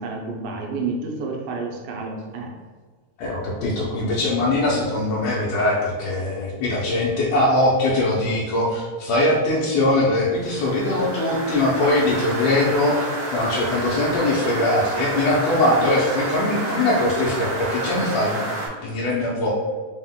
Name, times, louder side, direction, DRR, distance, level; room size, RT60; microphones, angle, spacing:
voice 1, 0.0-2.5, right 3 dB, 85° right, 1 dB, 2.2 m, -30 dB
voice 2, 3.2-13.1 13.3-18.5 18.8-19.5, left 2 dB, 80° left, -5 dB, 1.6 m, -21 dB
sound 1, 10.3-18.7, right 2 dB, 60° right, 2.0 m, -30 dB
5.2 x 2.1 x 3.6 m, 1.4 s
omnidirectional pair, 3.8 m